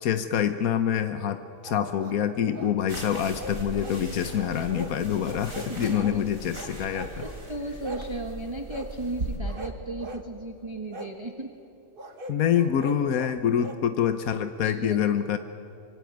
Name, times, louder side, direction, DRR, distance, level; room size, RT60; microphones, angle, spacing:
voice 1, 0.0-7.1 12.3-15.4, left 9 dB, 90° left, 9 dB, 1.4 m, -26 dB
sound 1, 1.6-2.7 3.1-4.0 4.3-5.0 5.3-6.2 6.5-7.4 7.8-8.1 8.7-8.9 9.4-10.3 10.9-11.1 12.0-13.8, equal, 40° right, 1.7 m, -41 dB
sound 2, 2.9-9.4, right 2 dB, 70° right, 4.3 m, -39 dB
voice 2, 5.7-6.2 6.9-11.5 14.6-15.0, right 2 dB, 20° right, 3 dB, 1.4 m, -36 dB
25.5 x 25.0 x 9.3 m, 2.8 s
omnidirectional pair, 1.4 m